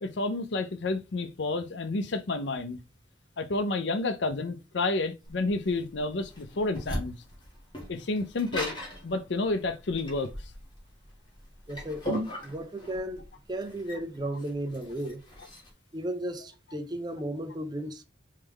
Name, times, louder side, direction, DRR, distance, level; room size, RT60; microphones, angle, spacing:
voice 1, 0.0-2.8 3.4-7.1 7.9-8.7 9.0-10.3, left 2 dB, 65° left, 0.6 m, -30 dB
sound 1, 5.2-15.7, equal, 25° left, 1.7 m, -38 dB
voice 2, 11.7-12.1 12.4-15.2 15.9-18.0, right 1 dB, 20° right, 0.5 m, -35 dB
4.5 x 3.2 x 3.5 m
head